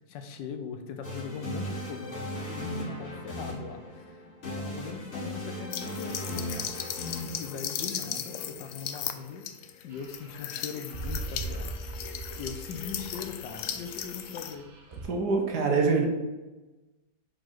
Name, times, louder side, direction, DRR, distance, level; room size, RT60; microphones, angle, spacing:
voice 1, 0.0-7.0 7.4-9.5 9.8-11.7 12.4-14.7, left 5 dB, 90° left, 7 dB, 1.5 m, -40 dB
sound 1, 1.0-9.0, equal, 40° left, 2.2 m, -37 dB
sound 2, 5.7-14.5, left 9 dB, 70° left, 0.7 m, -37 dB
sound 3, 9.9-15.1, right 3 dB, 45° right, 1.0 m, -41 dB
voice 2, 15.1-16.0, right 4 dB, 65° right, 2 dB, 1.7 m, -24 dB
5.1 x 5.0 x 5.9 m, 1.1 s
omnidirectional pair, 1.9 m